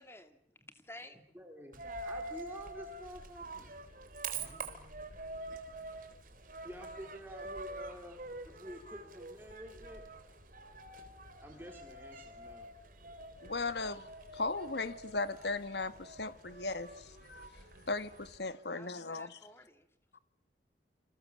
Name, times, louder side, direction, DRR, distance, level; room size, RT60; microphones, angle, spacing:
voice 1, 0.0-1.2 18.7-19.9, left 1 dB, 15° left, 2.6 m, -53 dB
voice 2, 1.3-3.7 4.3-4.7 6.6-8.2 8.5-10.3 11.4-12.7, equal, 10° right, 4.0 m, -49 dB
Coin (dropping), 1.7-18.4, right 2 dB, 50° right, 4.0 m, -46 dB
voice 3, 13.4-14.1 14.3-17.4 17.9-19.3, left 3 dB, 70° left, 1.4 m, -37 dB
28.5 x 27.5 x 7.4 m
head